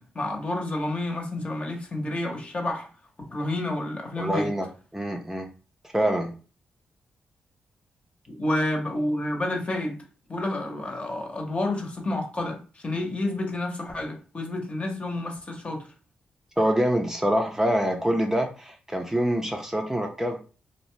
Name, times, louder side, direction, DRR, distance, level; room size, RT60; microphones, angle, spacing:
voice 1, 0.0-2.9 3.3-4.5 8.3-10.0 10.3-12.6 12.8-15.9, left 1 dB, 40° left, 2 dB, 0.9 m, -29 dB
voice 2, 4.2-4.7 4.9-5.5 5.9-6.3 16.6-20.4, equal, 15° right, 2 dB, 0.6 m, -25 dB
2.7 x 2.1 x 3.2 m, 0.36 s
cardioid pair, 55°, 3 cm